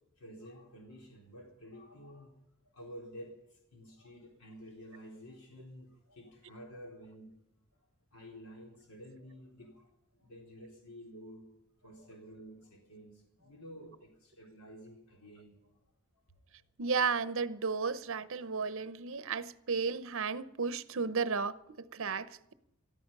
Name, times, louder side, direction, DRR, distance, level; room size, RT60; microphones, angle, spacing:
voice 1, 0.2-2.3 2.7-7.3 8.1-11.5 11.8-15.8 16.1-16.4, equal, 90° left, 3.9 m, -51 dB
voice 2, 16.8-22.5, right 5 dB, 65° right, 0.8 m, -34 dB
18.5 x 13.5 x 5.4 m
head